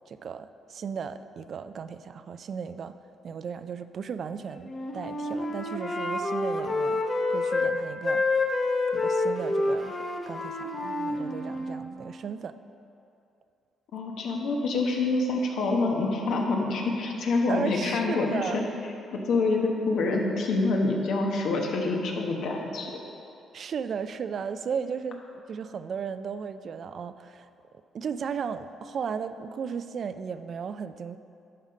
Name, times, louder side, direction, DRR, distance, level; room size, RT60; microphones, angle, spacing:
voice 1, 0.1-3.0 3.2-7.0 7.3-8.3 8.9-10.0 10.3-12.6 17.5-18.7 23.5-25.2 25.5-27.5 27.9-31.2, right 6 dB, 55° right, 11 dB, 0.3 m, -35 dB
Wind instrument woodwind instrument, 4.6-7.7 8.0-11.8, left 2 dB, 30° left, 0.8 m, -28 dB
voice 2, 13.9-18.6 19.2-23.0, left 3 dB, 75° left, 1 dB, 1.1 m, -26 dB
11.0 x 4.0 x 5.2 m, 2.7 s
cardioid pair, 90°, 0 cm